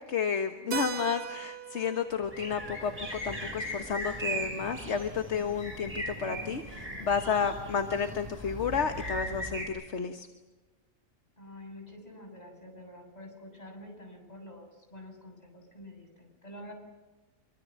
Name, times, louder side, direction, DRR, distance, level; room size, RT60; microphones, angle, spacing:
voice 1, 0.0-10.3, left 6 dB, 50° left, 7 dB, 1.5 m, -31 dB
Keyboard (musical), 0.7-5.2, right 7 dB, 85° right, 1.8 m, -42 dB
sound 1, 2.2-9.7, right 1 dB, 20° right, 7.2 m, -38 dB
voice 2, 11.4-16.7, left 1 dB, 25° left, 2 dB, 7.7 m, -48 dB
26.0 x 24.5 x 7.6 m, 1.2 s
omnidirectional pair, 1.6 m